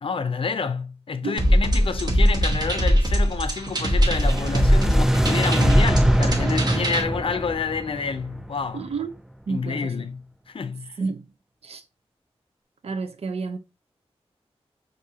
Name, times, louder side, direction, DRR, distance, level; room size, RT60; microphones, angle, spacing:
voice 1, 0.0-8.8 9.5-10.2 10.5-11.0, left 5 dB, 55° left, 0.5 m, -29 dB
sound 1, 1.4-7.0, equal, 40° right, 1.1 m, -21 dB
sound 2, 3.9-9.1, right 1 dB, 5° right, 0.3 m, -24 dB
voice 2, 8.7-9.1 9.5-10.1 11.0-11.4 11.6-11.8 12.8-13.6, right 4 dB, 70° right, 0.7 m, -30 dB
6.2 x 2.7 x 2.8 m
wide cardioid pair, 130°, 11 cm